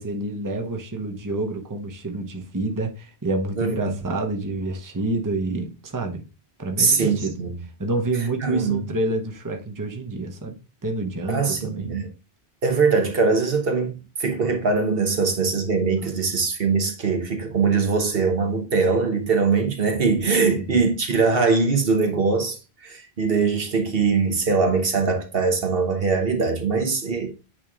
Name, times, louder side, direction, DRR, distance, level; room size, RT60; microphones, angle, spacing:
voice 1, 0.0-6.2 6.6-7.4 7.8-10.6 10.8-12.0 20.4-20.8, right 2 dB, 20° right, 0.9 m, -28 dB
voice 2, 6.8-7.6 8.4-8.8 11.3-12.1 12.6-27.3, right 4 dB, 65° right, 1.3 m, -22 dB
8.7 x 3.4 x 3.5 m
omnidirectional pair, 1.1 m